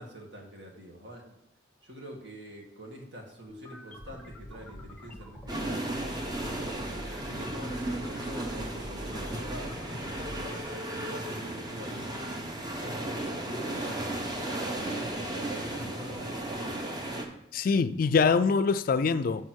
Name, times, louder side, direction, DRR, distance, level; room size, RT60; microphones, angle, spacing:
voice 1, 0.0-1.4 1.8-5.8 6.4-9.7 10.2-14.4 14.8-16.6, equal, 65° right, 1.9 m, -46 dB
sound 1, 3.5-10.6, equal, 5° left, 1.2 m, -44 dB
sound 2, 5.5-17.3, right 1 dB, 20° right, 0.9 m, -35 dB
voice 2, 17.5-19.4, left 5 dB, 50° left, 0.3 m, -24 dB
6.3 x 5.6 x 6.3 m
head